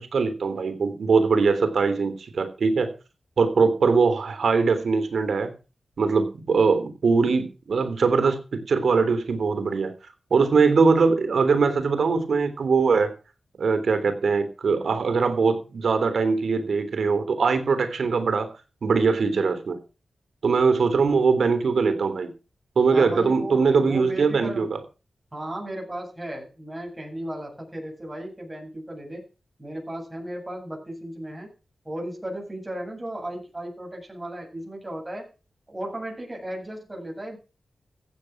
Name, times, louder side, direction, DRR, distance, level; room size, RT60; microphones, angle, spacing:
voice 1, 0.0-2.9 3.4-5.5 6.0-9.9 10.3-13.1 13.6-18.5 18.8-19.8 20.4-22.3 22.8-24.8, right 4 dB, 70° right, 10 dB, 3.5 m, -21 dB
voice 2, 22.9-24.6 25.3-29.2 29.6-31.5 31.8-35.3 35.7-37.4, right 1 dB, 15° right, 0 dB, 8.0 m, -35 dB
15.0 x 9.4 x 6.0 m, 0.33 s
wide cardioid pair, 85°, 0 cm